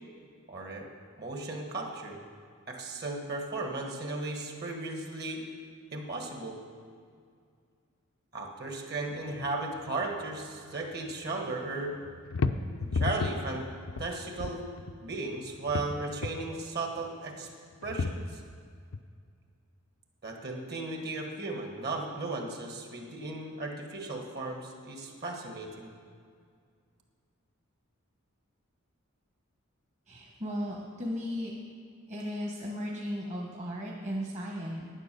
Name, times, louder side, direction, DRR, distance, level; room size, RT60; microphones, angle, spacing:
voice 1, 0.5-0.9 1.2-2.2 2.7-5.4 5.9-6.6 8.3-11.9 12.8-13.6 14.0-14.7 15.0-17.5 17.8-18.4 20.2-25.9, right 2 dB, 50° right, 2 dB, 1.6 m, -36 dB
sound 1, 9.0-10.4 10.7-11.5 12.0-15.1 15.5-16.6 17.5-18.6 18.9-19.0, left 4 dB, 80° left, 0.5 m, -34 dB
voice 2, 30.1-31.5 32.1-34.8, equal, 35° right, -2 dB, 1.2 m, -35 dB
11.0 x 9.3 x 6.8 m, 2.2 s
head